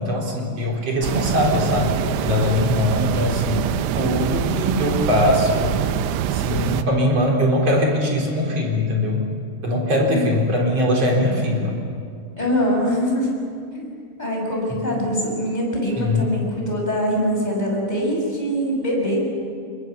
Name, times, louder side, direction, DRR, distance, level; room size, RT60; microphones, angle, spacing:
voice 1, 0.0-3.7 3.9-5.8 6.3-9.3 9.6-11.7 14.7-14.8 16.0-16.3, left 1 dB, 35° right, -1 dB, 4.4 m, -21 dB
sound 1, 1.0-6.8, right 10 dB, 80° right, 2.4 m, -24 dB
voice 2, 12.4-13.3 13.7-13.9 14.2-19.3, equal, 10° left, -2 dB, 6.1 m, -23 dB
26.5 x 21.5 x 7.1 m, 2.3 s
omnidirectional pair, 5.6 m